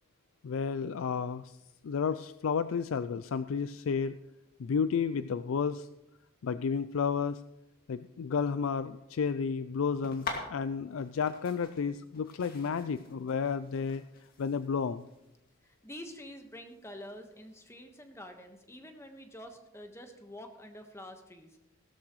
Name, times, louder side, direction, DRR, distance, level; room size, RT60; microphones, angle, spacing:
voice 1, 0.4-1.6 1.8-4.2 4.6-5.9 6.4-7.4 7.9-14.0 14.4-15.1, left 6 dB, 85° left, 13 dB, 0.4 m, -32 dB
sound 1, 10.0-17.7, left 4 dB, 50° left, 2.2 m, -46 dB
voice 2, 15.6-21.6, left 1 dB, 15° left, 5 dB, 1.3 m, -47 dB
16.5 x 13.0 x 3.1 m, 0.90 s
head